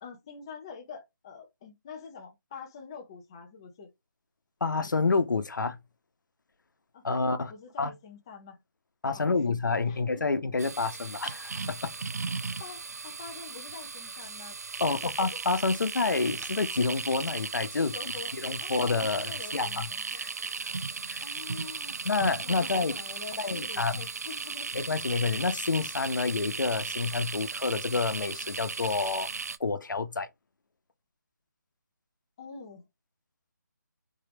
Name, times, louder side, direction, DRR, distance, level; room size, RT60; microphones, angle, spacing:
voice 1, 0.0-3.9 6.9-7.0 7.5-8.6 9.1-9.3 9.9-10.0 12.6-15.0 17.8-18.3 18.6-20.2 21.2-22.0 22.4-24.7 32.4-32.8, left 5 dB, 15° left, 0.5 m, -45 dB
voice 2, 4.6-5.8 7.0-7.5 7.8-7.9 9.0-11.9 14.8-17.9 18.3-19.9 20.1-20.3 21.1-21.2 22.0-22.9 23.4-24.0 24.7-29.3 29.6-30.3, left 4 dB, 80° left, 1.0 m, -28 dB
sound 1, 10.6-29.6, right 4 dB, 55° right, 0.6 m, -36 dB
4.6 x 3.4 x 3.0 m
hypercardioid pair, 175°, 10 cm